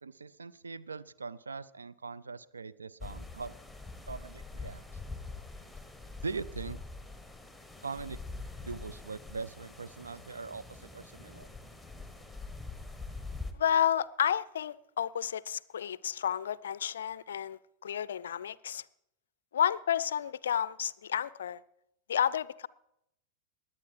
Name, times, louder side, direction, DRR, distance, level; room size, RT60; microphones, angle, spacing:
voice 1, 0.0-3.5 4.1-4.8 6.2-6.8 7.8-8.2 8.6-11.5, right 4 dB, 75° right, 16 dB, 0.5 m, -41 dB
sound 1, 3.0-13.5, left 3 dB, ahead, 1.2 m, -44 dB
voice 2, 13.6-18.8 19.5-21.6 22.1-22.7, left 9 dB, 65° left, 21 dB, 0.4 m, -31 dB
20.0 x 8.4 x 4.7 m, 0.79 s
figure-of-eight pair, 90°, 0 cm